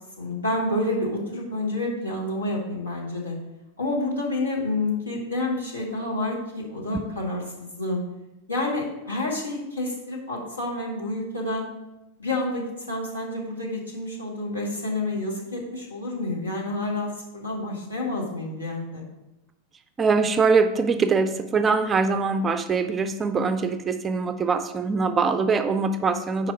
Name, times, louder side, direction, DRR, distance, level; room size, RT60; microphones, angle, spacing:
voice 1, 0.2-3.4 3.8-8.0 8.5-11.7 12.2-19.0, left 2 dB, 75° left, -2 dB, 1.7 m, -29 dB
voice 2, 20.0-26.5, right 4 dB, 20° right, 9 dB, 0.4 m, -23 dB
4.8 x 4.8 x 5.5 m, 0.95 s
figure-of-eight pair, 90°, 0 cm